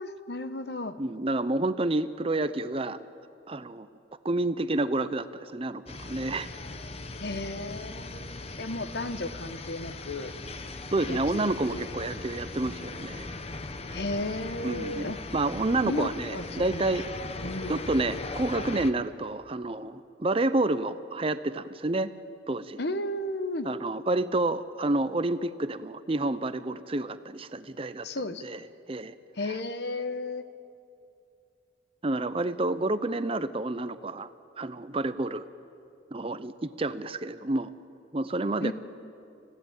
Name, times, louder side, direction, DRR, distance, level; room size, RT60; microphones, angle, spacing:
voice 1, 0.0-0.9 7.2-10.3 11.1-11.9 13.9-15.2 15.8-17.0 17.2-17.9 22.8-23.7 28.0-28.4 29.3-30.4 38.6-38.7, left 2 dB, 60° left, 10 dB, 1.1 m, -34 dB
voice 2, 1.0-3.0 3.5-3.9 4.2-6.5 10.9-13.3 14.6-17.1 17.7-22.1 22.5-22.8 23.6-28.1 28.4-28.6 28.9-29.1 32.0-34.3 34.6-35.4 36.1-37.7 38.1-38.7, right 2 dB, 30° right, 13 dB, 0.6 m, -29 dB
sound 1, 5.9-18.9, left 2 dB, 35° left, 0.9 m, -39 dB
29.5 x 16.0 x 8.9 m, 2.6 s
head